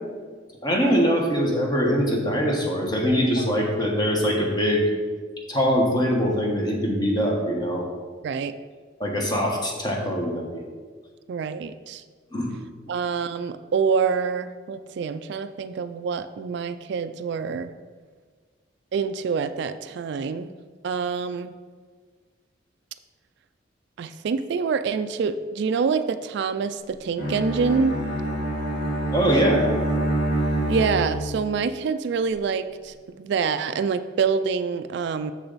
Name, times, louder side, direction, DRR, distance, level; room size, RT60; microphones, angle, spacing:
voice 1, 0.6-4.8 5.5-7.8 9.0-10.6 12.3-12.5 29.1-29.7, equal, 20° left, 0 dB, 1.2 m, -23 dB
voice 2, 8.2-8.5 11.3-12.0 12.9-17.7 18.9-20.5 20.8-21.5 24.0-27.9 30.7-35.3, right 5 dB, 65° right, 11 dB, 0.3 m, -26 dB
Bowed string instrument, 27.2-31.6, right 1 dB, 60° left, 2.2 m, -26 dB
6.8 x 6.8 x 4.0 m, 1.5 s
head